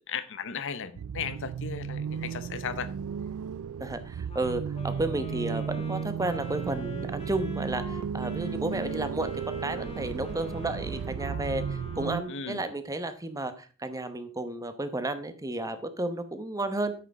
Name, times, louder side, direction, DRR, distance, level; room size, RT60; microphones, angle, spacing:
voice 1, 0.1-2.9 12.3-12.7, left 6 dB, 60° left, 0.8 m, -36 dB
sound 1, 1.0-12.2, right 7 dB, 70° right, 0.3 m, -34 dB
voice 2, 3.8-16.9, right 2 dB, 15° right, 0.9 m, -32 dB
Wind instrument woodwind instrument, 4.3-12.6, left 2 dB, 30° left, 1.6 m, -45 dB
8.8 x 6.4 x 4.7 m
head